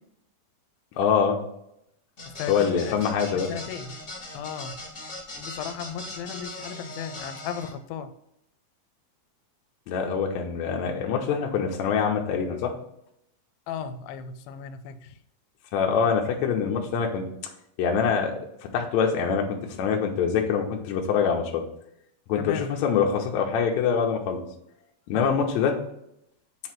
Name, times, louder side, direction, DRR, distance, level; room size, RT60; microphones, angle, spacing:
voice 1, 1.0-1.4 2.5-3.5 9.9-12.7 15.7-17.2 17.8-18.4 18.7-21.6 22.3-24.4 25.1-25.8, left 6 dB, 70° left, 2 dB, 1.9 m, -24 dB
sound 1, 2.2-7.7, left 2 dB, 40° left, 1.0 m, -39 dB
voice 2, 2.3-3.0 3.3-4.0 4.3-4.8 5.4-8.1 13.7-15.2 22.4-22.6 25.1-25.3, left 7 dB, 90° left, 9 dB, 2.4 m, -36 dB
7.5 x 3.1 x 5.9 m, 0.78 s
omnidirectional pair, 4.1 m